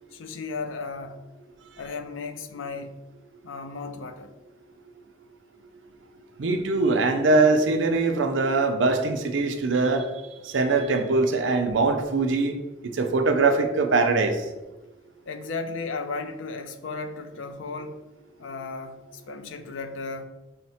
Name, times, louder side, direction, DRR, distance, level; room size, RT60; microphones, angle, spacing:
voice 1, 0.1-1.2 1.8-2.9 3.4-4.3 15.3-18.0 18.4-20.3, left 4 dB, 85° left, 0.5 m, -35 dB
voice 2, 6.4-10.1 10.4-12.6 12.9-14.4, right 3 dB, 75° right, 0.5 m, -22 dB
5.7 x 2.1 x 4.1 m
head